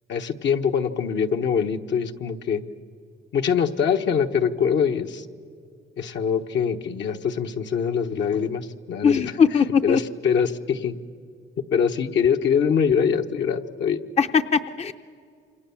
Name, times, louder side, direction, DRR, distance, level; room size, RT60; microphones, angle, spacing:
voice 1, 0.1-2.6 3.3-5.2 6.0-9.3 9.8-10.9 11.7-14.0, left 7 dB, 65° left, 5 dB, 1.2 m, -23 dB
voice 2, 9.0-10.0 14.2-14.9, left 6 dB, 35° left, 9 dB, 0.7 m, -20 dB
28.0 x 26.0 x 7.1 m, 2.2 s
cardioid pair, 90°, 20 cm